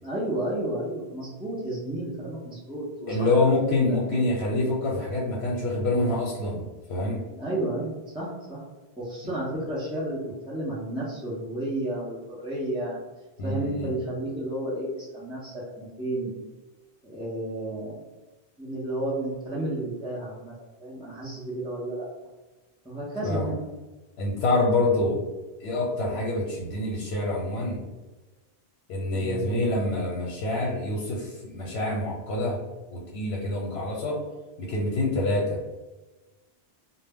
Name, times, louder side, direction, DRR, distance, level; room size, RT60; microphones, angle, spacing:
voice 1, 0.0-3.3 3.9-4.3 7.4-8.6 9.0-13.0 13.4-16.3 17.0-18.1 18.6-20.5 20.8-22.1 22.8-23.6 29.1-29.4, right 1 dB, 10° right, -8 dB, 0.4 m, -32 dB
voice 2, 3.1-7.2 13.4-13.9 23.2-23.5 24.2-25.2 25.6-27.8 28.9-32.6 32.9-34.2 34.6-35.6, left 2 dB, 85° left, -3 dB, 0.9 m, -26 dB
2.1 x 2.0 x 3.4 m, 1.2 s
omnidirectional pair, 1.1 m